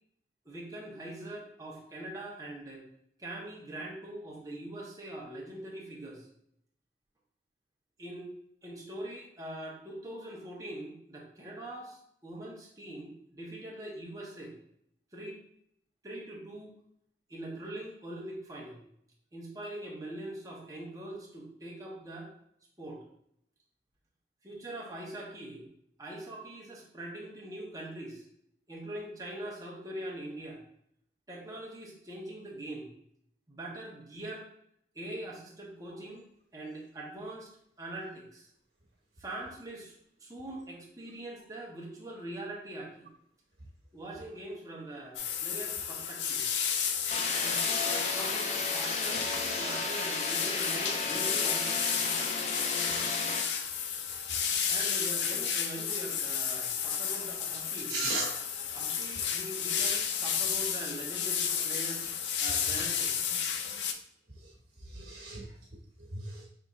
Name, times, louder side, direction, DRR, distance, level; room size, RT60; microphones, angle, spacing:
voice 1, 0.4-2.8 3.2-6.3 8.0-8.3 8.6-14.5 15.1-15.4 16.0-16.7 17.3-18.8 19.3-22.3 22.8-23.0 24.4-25.6 26.0-28.3 28.7-30.6 31.3-32.9 33.5-34.5 34.9-36.2 36.5-37.5 37.8-38.5 39.2-43.1 43.9-46.4 47.4-52.0 54.7-58.0 58.7-62.0 62.4-63.1, right 1 dB, 20° right, -3 dB, 1.1 m, -42 dB
sound 1, 45.1-63.9, left 7 dB, 90° left, 0.5 m, -32 dB
sound 2, 47.1-53.4, left 3 dB, 40° left, 0.6 m, -33 dB
voice 2, 54.6-55.0 57.9-58.4 64.4-64.5 64.8-65.4 66.1-66.4, right 2 dB, 70° right, -5 dB, 1.3 m, -36 dB
5.7 x 3.5 x 2.5 m, 0.70 s
head